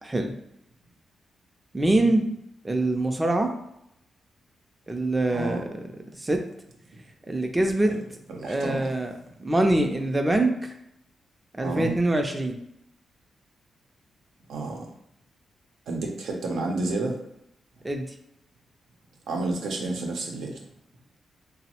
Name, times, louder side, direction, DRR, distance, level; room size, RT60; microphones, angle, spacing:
voice 1, 0.0-0.3 1.7-2.3 2.6-3.5 4.9-5.6 6.2-6.4 7.3-8.0 8.4-10.7 11.5-12.6 17.8-18.1, right 1 dB, 15° right, 4 dB, 0.4 m, -24 dB
voice 2, 5.3-5.6 7.9-8.0 8.3-8.9 11.6-11.9 14.5-14.9 15.9-17.2 19.3-20.6, right 2 dB, 85° right, 1 dB, 0.6 m, -30 dB
3.0 x 2.0 x 2.8 m, 0.80 s
cardioid pair, 80°, 0 cm